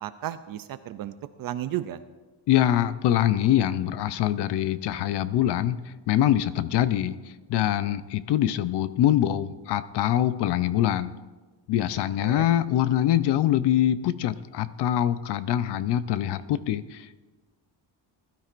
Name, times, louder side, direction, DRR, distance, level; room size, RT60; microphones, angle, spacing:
voice 1, 0.0-2.0 12.2-12.5, right 12 dB, 55° right, 11 dB, 0.4 m, -34 dB
voice 2, 2.5-5.8 6.1-7.2 7.5-11.1 11.7-17.1, left 12 dB, 65° left, 14 dB, 0.6 m, -24 dB
20.0 x 12.5 x 2.5 m, 1.3 s
cardioid pair, 175°, 44 cm